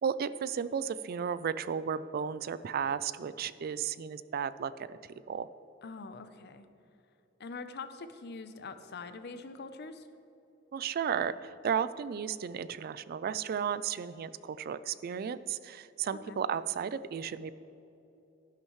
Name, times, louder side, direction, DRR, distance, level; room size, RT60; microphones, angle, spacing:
voice 1, 0.0-5.0 5.3-5.5 10.7-17.5, right 7 dB, 50° right, 16 dB, 0.3 m, -34 dB
voice 2, 5.8-6.7 7.4-10.1 16.1-16.4, left 4 dB, 55° left, 10 dB, 0.6 m, -44 dB
11.5 x 11.0 x 3.1 m, 2.9 s
head